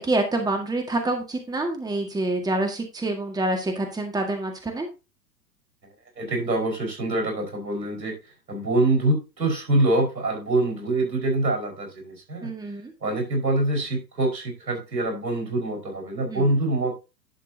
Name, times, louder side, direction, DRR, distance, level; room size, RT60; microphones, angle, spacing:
voice 1, 0.0-4.9 12.4-12.9 16.3-16.5, right 2 dB, 10° right, 4 dB, 1.8 m, -27 dB
voice 2, 6.2-8.1 8.5-12.5 13.0-17.0, right 2 dB, 85° right, 2 dB, 5.3 m, -25 dB
11.0 x 7.3 x 2.8 m, 0.28 s
hypercardioid pair, 110°, 50 cm